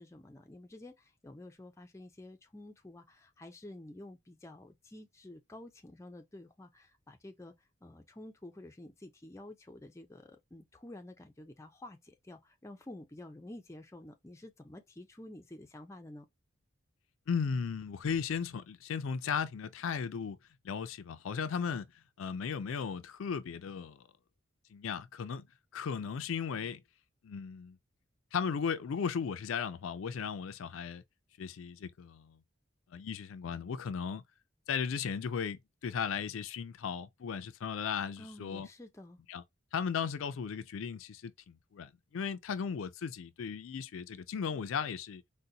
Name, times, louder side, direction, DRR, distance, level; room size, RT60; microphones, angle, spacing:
voice 1, 0.0-7.5 7.8-16.3 38.2-39.2, left 1 dB, 15° left, 0.4 m, -50 dB
voice 2, 17.3-20.4 20.6-21.9 22.2-24.0 24.7-25.5 25.7-26.8 27.2-27.8 28.3-31.0 31.4-32.4 32.9-34.2 34.7-38.7 39.3-39.4 39.7-45.2, left 6 dB, 80° left, 0.4 m, -36 dB
3.9 x 2.1 x 2.7 m
head